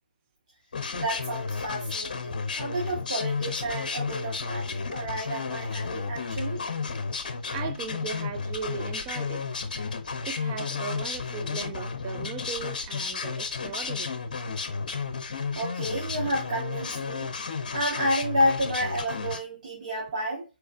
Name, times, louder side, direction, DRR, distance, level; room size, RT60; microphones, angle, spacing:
sound 1, 0.7-19.4, left 5 dB, 50° left, 0.9 m, -32 dB
voice 1, 0.9-6.6 15.5-17.3 17.7-20.4, equal, 45° right, 1.7 m, -30 dB
voice 2, 7.5-9.6 10.2-14.1, right 6 dB, 20° right, 0.5 m, -37 dB
4.6 x 4.3 x 2.6 m
figure-of-eight pair, 150°, 5 cm